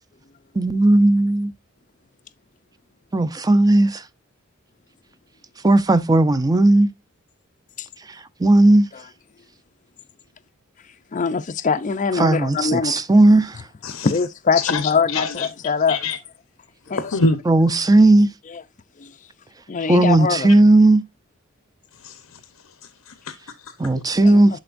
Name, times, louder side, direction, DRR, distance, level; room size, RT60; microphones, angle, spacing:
voice 1, 0.6-1.5 3.1-4.0 5.6-6.9 8.4-8.9 12.2-13.6 17.5-18.3 19.9-21.0 23.8-24.6, right 2 dB, 15° right, 0.5 m, -15 dB
voice 2, 11.1-13.0 13.9-16.0 16.9-17.2 18.5-18.6 19.0-19.1 19.7-20.5 24.2-24.6, left 5 dB, 35° left, 0.5 m, -23 dB
voice 3, 14.5-15.5 15.9-16.2 17.0-17.4 22.0-22.4 23.1-23.7, left 3 dB, 85° left, 0.8 m, -25 dB
11.5 x 4.3 x 2.5 m
head